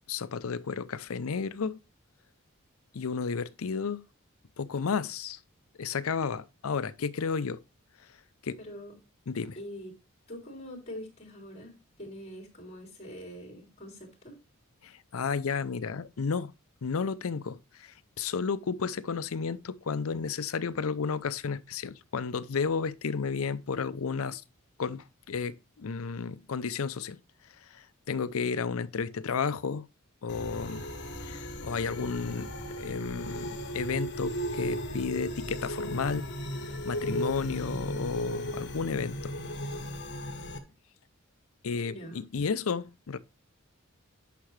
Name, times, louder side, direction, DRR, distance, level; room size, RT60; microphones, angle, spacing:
voice 1, 0.1-1.8 2.9-4.0 4.6-5.4 5.8-7.6 8.4-8.6 9.3-9.6 14.8-16.5 16.8-24.4 24.8-27.2 27.7-29.9 30.2-30.9 31.2-36.3 36.8-39.3 41.6-43.2, left 5 dB, 70° left, 0.5 m, -32 dB
voice 2, 8.6-8.9 9.6-9.9 10.3-14.4 41.8-42.4, equal, 30° left, 3.4 m, -44 dB
sound 1, 30.3-40.6, equal, 55° left, 1.4 m, -36 dB
10.0 x 5.8 x 3.2 m
head